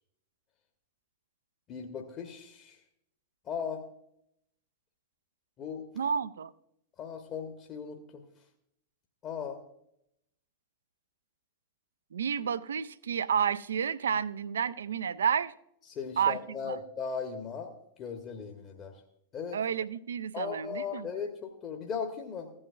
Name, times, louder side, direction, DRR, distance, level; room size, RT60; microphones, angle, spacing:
voice 1, 1.7-2.8 3.4-3.8 5.6-5.9 7.0-8.2 9.2-9.6 15.9-19.0 19.3-19.6 20.3-22.5, left 6 dB, 30° left, 1.0 m, -38 dB
voice 2, 6.0-6.5 12.1-15.5 16.2-16.4 16.6-16.8 19.5-21.1, right 7 dB, 65° right, 0.4 m, -30 dB
14.5 x 8.6 x 2.3 m
figure-of-eight pair, 90°, 0 cm